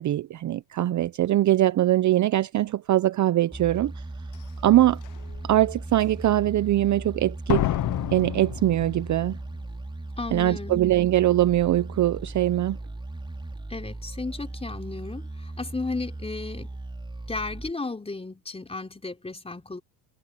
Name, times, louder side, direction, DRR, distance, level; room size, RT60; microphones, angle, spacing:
voice 1, 0.0-3.9 4.6-5.0 5.4-7.7 8.1-9.4 10.3-12.8, right 14 dB, 35° right, 0.9 m, -22 dB
sound 1, 3.5-17.7, right 2 dB, 10° right, 4.8 m, -37 dB
Slam, 4.3-4.4 5.0-5.4 7.5-9.4 9.6-9.7, left 14 dB, 40° left, 0.9 m, -29 dB
voice 2, 10.2-10.8 13.7-16.7 17.3-19.8, left 3 dB, 10° left, 4.3 m, -34 dB
supercardioid pair, 90°, 50 cm